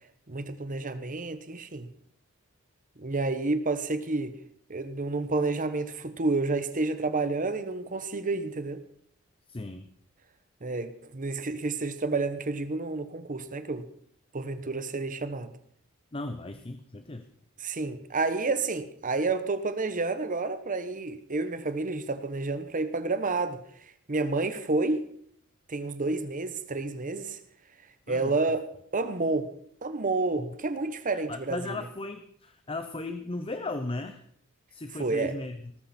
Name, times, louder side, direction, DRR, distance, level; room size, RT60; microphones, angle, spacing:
voice 1, 0.3-1.9 3.0-4.3 4.7-8.8 10.6-13.9 14.3-15.5 17.6-23.6 24.1-25.1 25.7-27.4 28.1-28.7 28.9-29.5 29.8-31.8 35.0-35.4, right 3 dB, 40° right, 1.0 m, -30 dB
voice 2, 9.5-9.9 16.1-17.3 28.1-28.3 30.4-30.5 31.1-34.2 34.7-35.7, left 2 dB, 25° left, 0.8 m, -36 dB
18.0 x 14.0 x 4.3 m
head